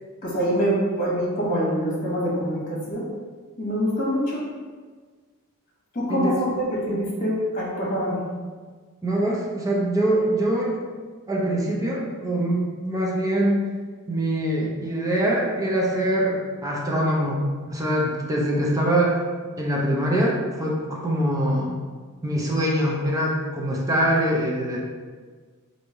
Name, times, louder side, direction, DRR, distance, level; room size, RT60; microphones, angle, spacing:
voice 1, 0.2-3.0 3.6-4.4 5.9-8.2, equal, 40° left, -5 dB, 1.2 m, -25 dB
voice 2, 9.0-10.8 11.3-13.7 14.1-17.4 17.7-19.2 19.6-21.7 22.2-24.8, right 1 dB, 15° right, -3 dB, 0.5 m, -23 dB
3.2 x 2.6 x 4.4 m, 1.5 s
head